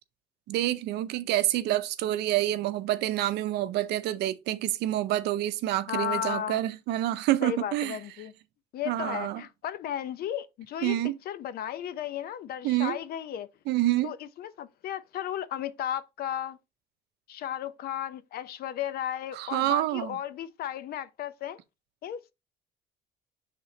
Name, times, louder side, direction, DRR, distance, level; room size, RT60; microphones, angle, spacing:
voice 1, 0.5-8.0 8.9-9.4 10.8-11.2 12.6-13.0 13.7-14.1 19.3-20.2, right 14 dB, 80° right, 0.6 m, -27 dB
voice 2, 5.9-6.6 7.4-8.3 8.7-13.5 14.0-16.6 17.3-21.6 22.0-22.3, left 10 dB, 65° left, 0.7 m, -34 dB
6.5 x 3.7 x 4.0 m
cardioid pair, 110°, 17 cm